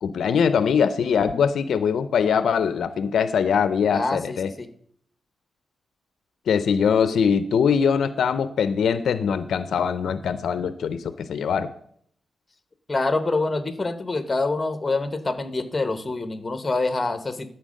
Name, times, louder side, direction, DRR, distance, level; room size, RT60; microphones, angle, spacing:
voice 1, 0.0-4.5 6.5-11.7, left 7 dB, 85° left, 13 dB, 0.5 m, -22 dB
voice 2, 3.9-4.7 12.9-17.5, left 3 dB, 20° left, 10 dB, 1.0 m, -26 dB
12.5 x 4.5 x 6.3 m, 0.64 s
wide cardioid pair, 115°, 0 cm